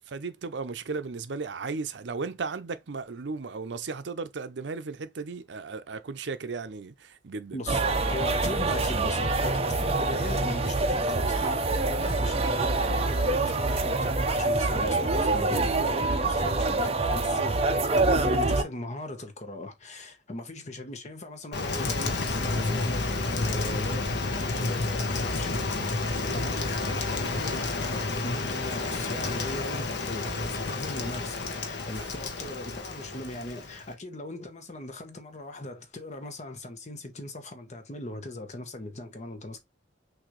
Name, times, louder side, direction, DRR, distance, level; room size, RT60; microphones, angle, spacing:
voice 1, 0.1-7.6 32.0-32.1, right 4 dB, 70° right, 0.6 m, -35 dB
sound 1, 7.7-18.6, right 2 dB, 35° right, 0.7 m, -25 dB
voice 2, 8.1-39.6, left 1 dB, 40° left, 1.0 m, -39 dB
Rain, 21.5-33.9, left 3 dB, 65° left, 1.0 m, -30 dB
6.3 x 2.7 x 3.1 m
head